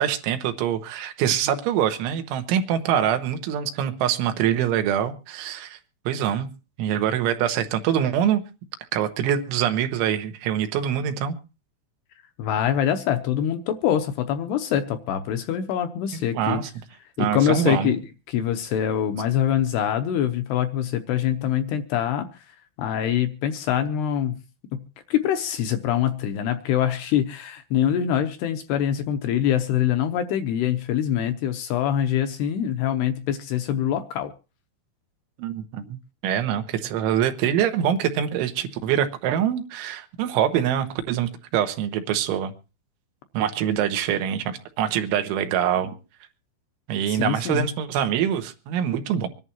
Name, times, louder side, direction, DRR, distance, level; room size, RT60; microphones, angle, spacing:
voice 1, 0.0-5.8 6.1-6.5 6.8-8.4 8.9-11.4 16.4-16.7 17.2-17.9 35.4-36.0 36.2-42.5 43.3-45.9 46.9-49.3, right 9 dB, 90° right, 8 dB, 3.6 m, -24 dB
voice 2, 12.4-16.6 17.2-18.0 18.3-24.4 24.7-24.8 25.1-34.3 47.1-47.7, left 10 dB, 75° left, 8 dB, 2.6 m, -24 dB
25.5 x 11.0 x 2.8 m, 0.34 s
omnidirectional pair, 5.4 m